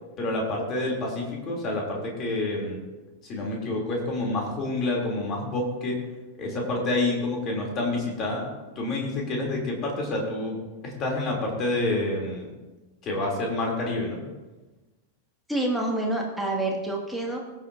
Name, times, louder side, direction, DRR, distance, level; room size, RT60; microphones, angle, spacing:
voice 1, 0.2-2.8 3.3-6.0 6.4-8.4 8.8-10.6 10.8-12.5 13.0-14.2, left 2 dB, 30° left, -1 dB, 3.4 m, -28 dB
voice 2, 15.5-17.4, right 1 dB, ahead, -2 dB, 2.3 m, -27 dB
21.0 x 8.0 x 2.8 m, 1.2 s
figure-of-eight pair, 90°, 0 cm